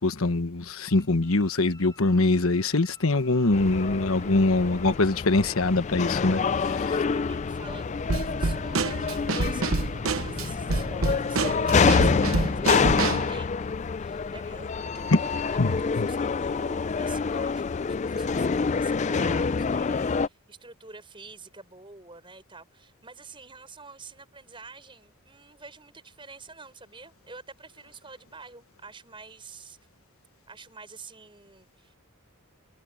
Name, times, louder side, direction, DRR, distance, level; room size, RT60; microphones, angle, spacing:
voice 1, 0.0-7.0 15.1-15.2 15.6-16.1, left 2 dB, 75° left, 1.3 m, -23 dB
sound 1, 0.9-5.7, left 2 dB, 15° left, 5.5 m, -54 dB
sound 2, 3.5-20.3, left 5 dB, 35° left, 0.3 m, -27 dB
voice 2, 6.9-29.8 30.5-32.0, right 4 dB, 25° right, 6.4 m, -47 dB
Drum kit / Snare drum, 8.1-13.3, right 3 dB, 75° right, 1.0 m, -28 dB
head